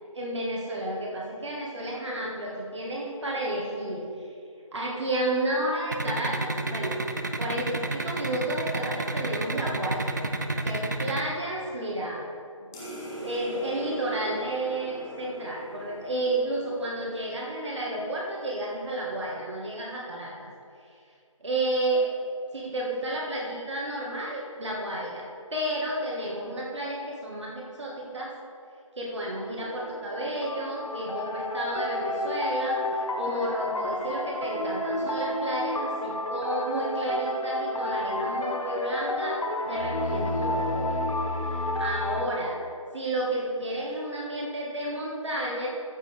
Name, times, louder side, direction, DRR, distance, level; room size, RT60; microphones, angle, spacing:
voice 1, 0.1-4.1 4.7-7.0 7.4-12.2 13.2-20.5 21.4-22.1 22.5-28.3 29.0-41.0 41.5-42.6 42.9-45.7, right 1 dB, 55° right, -3 dB, 1.7 m, -31 dB
sound 1, 5.9-11.2, right 2 dB, 35° right, 0.5 m, -29 dB
sound 2, 12.7-17.6, equal, 5° left, 0.7 m, -41 dB
sound 3, 29.3-42.2, left 1 dB, 80° left, 1.2 m, -30 dB
13.5 x 7.4 x 3.5 m, 2.4 s
figure-of-eight pair, 170°, 17 cm